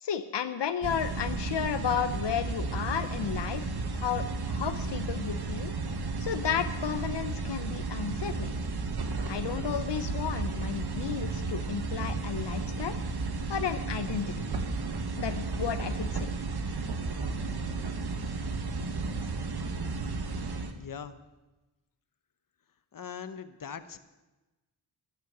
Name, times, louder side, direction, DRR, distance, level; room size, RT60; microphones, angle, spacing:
voice 1, 0.0-3.7 3.9-5.7 6.2-8.5 9.3-13.0 13.5-14.4 15.2-16.3, left 8 dB, 80° left, 9 dB, 0.8 m, -33 dB
sound 1, 0.8-20.7, right 3 dB, 65° right, 1.4 m, -33 dB
voice 2, 20.7-21.2 22.9-24.0, left 7 dB, 50° left, 11 dB, 1.0 m, -41 dB
12.0 x 12.0 x 6.7 m, 1.1 s
cardioid pair, 75°, 41 cm